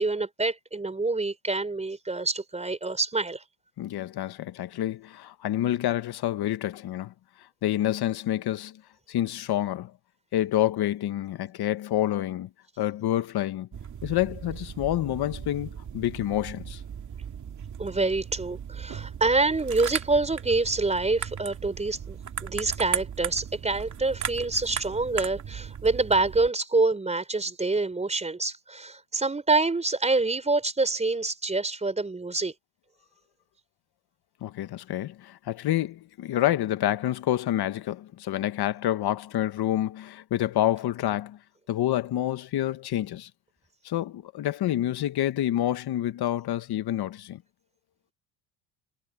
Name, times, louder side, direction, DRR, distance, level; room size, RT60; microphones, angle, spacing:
voice 1, 0.0-3.4 17.8-32.5, right 3 dB, 15° right, 4.5 m, -26 dB
voice 2, 3.8-7.1 7.6-8.8 9.1-9.9 10.3-12.5 12.8-13.7 14.0-16.8 34.4-41.4 41.7-43.3 43.8-47.4, left 13 dB, 50° left, 1.5 m, -28 dB
sound 1, 13.7-26.5, right 8 dB, 35° right, 2.5 m, -37 dB
cardioid pair, 115°, 48 cm